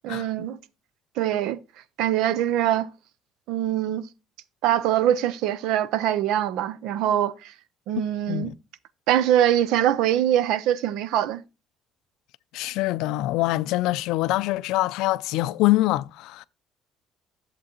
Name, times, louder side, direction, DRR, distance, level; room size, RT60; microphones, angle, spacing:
voice 1, 0.0-0.6 1.2-1.6 2.0-2.9 3.5-4.1 4.6-7.5 7.9-8.5 9.1-11.4, right 11 dB, 80° right, 0.5 m, -23 dB
voice 2, 12.5-16.4, left 18 dB, 80° left, 0.4 m, -24 dB
11.0 x 7.5 x 3.0 m
cardioid pair, 145°, 0 cm